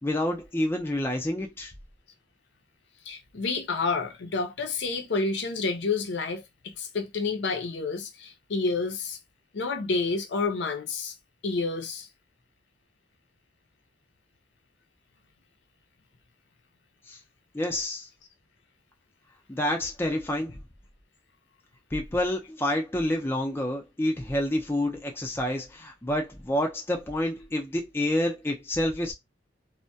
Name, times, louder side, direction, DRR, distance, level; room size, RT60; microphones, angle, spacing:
voice 1, 0.0-1.7 17.1-17.2 17.5-18.1 19.5-20.6 21.9-29.1, left 1 dB, 10° left, 0.5 m, -28 dB
voice 2, 3.1-9.2 9.5-11.1 11.4-12.1, left 4 dB, 65° left, 0.5 m, -29 dB
2.2 x 2.1 x 2.6 m
head